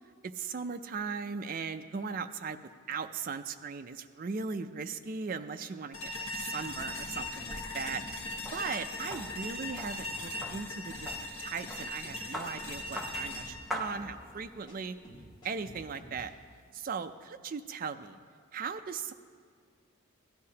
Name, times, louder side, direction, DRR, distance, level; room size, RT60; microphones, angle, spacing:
voice 1, 0.2-2.6 2.9-8.0 8.5-11.1 11.4-15.0 15.4-16.3 16.7-18.2 18.5-19.1, right 5 dB, 40° right, 8 dB, 0.4 m, -38 dB
sound 1, 5.9-15.0, left 1 dB, 70° left, 1.4 m, -40 dB
sound 2, 6.4-7.6 7.9-8.8 9.0-10.6 10.9-11.1 11.7-11.8 12.0-13.6 13.9-14.1 14.7-14.8 15.0-16.2, equal, 20° left, 2.0 m, -51 dB
sound 3, 7.1-14.6, equal, ahead, 0.6 m, -45 dB
16.5 x 11.5 x 2.8 m, 2.1 s
head